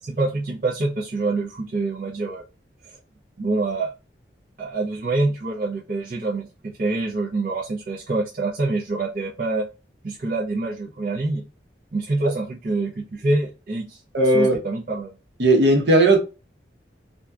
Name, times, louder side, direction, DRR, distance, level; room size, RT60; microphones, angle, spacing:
voice 1, 0.0-2.4 3.4-3.9 4.6-9.6 10.0-11.4 11.9-14.0 14.3-15.1, right 2 dB, 50° right, 0.4 m, -26 dB
voice 2, 14.1-14.6 15.4-16.2, right 2 dB, 80° right, 0.8 m, -16 dB
2.6 x 2.2 x 2.2 m
head